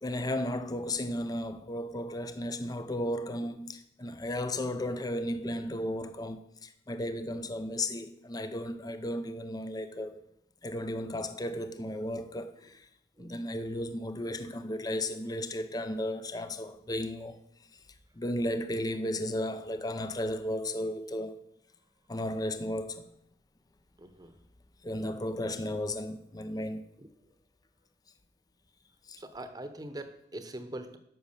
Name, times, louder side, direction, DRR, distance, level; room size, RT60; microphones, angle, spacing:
voice 1, 0.0-10.1 10.6-12.9 13.2-17.4 18.2-21.4 22.1-23.0 24.8-26.8 29.1-29.2, left 1 dB, 20° left, 0.6 m, -34 dB
voice 2, 24.0-24.3 27.0-27.1 29.2-31.0, right 1 dB, 20° right, 1.0 m, -42 dB
11.0 x 6.2 x 6.8 m
head